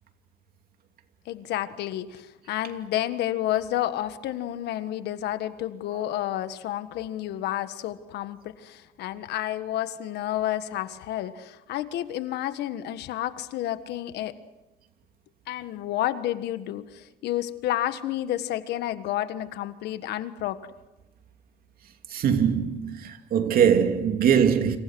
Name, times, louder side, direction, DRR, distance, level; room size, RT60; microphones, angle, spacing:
voice 1, 1.2-14.3 15.5-20.6, left 13 dB, 80° left, 1.5 m, -30 dB
voice 2, 22.1-24.8, right 8 dB, 60° right, 2.8 m, -22 dB
28.5 x 26.5 x 6.2 m
cardioid pair, 110°, 17 cm